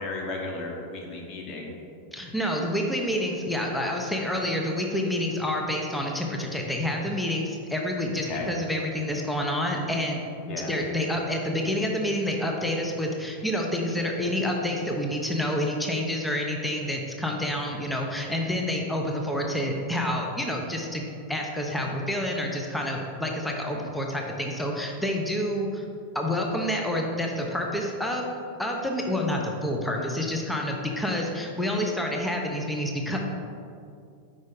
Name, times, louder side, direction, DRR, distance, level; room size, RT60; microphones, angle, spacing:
voice 1, 0.0-1.7 8.2-8.5 10.5-10.7 23.7-23.8 30.0-30.1, left 3 dB, 35° left, 0 dB, 1.1 m, -34 dB
voice 2, 2.1-21.0 21.3-25.8 26.1-28.3 28.6-33.2, left 1 dB, 5° left, 0 dB, 0.6 m, -28 dB
5.2 x 5.2 x 3.8 m, 2.4 s
figure-of-eight pair, 90°, 0 cm